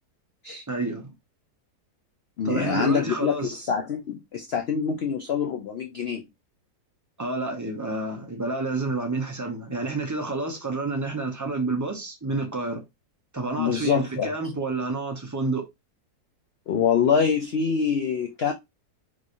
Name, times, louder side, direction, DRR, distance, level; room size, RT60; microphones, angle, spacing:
voice 1, 0.7-1.1 2.4-3.6 7.2-12.8 13.3-15.7, right 3 dB, 25° right, 0.4 m, -29 dB
voice 2, 2.4-6.2 13.6-14.3 16.7-18.5, left 6 dB, 80° left, 0.5 m, -25 dB
3.6 x 3.1 x 2.5 m
omnidirectional pair, 1.7 m